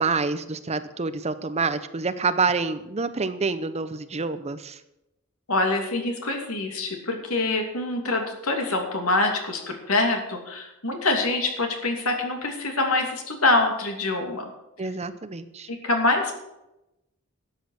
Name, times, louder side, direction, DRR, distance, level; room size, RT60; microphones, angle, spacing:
voice 1, 0.0-4.8 14.8-15.7, right 4 dB, 30° right, 12 dB, 0.7 m, -27 dB
voice 2, 5.5-14.4 15.7-16.3, left 2 dB, 80° left, 3 dB, 2.7 m, -25 dB
12.5 x 8.5 x 6.4 m, 0.90 s
head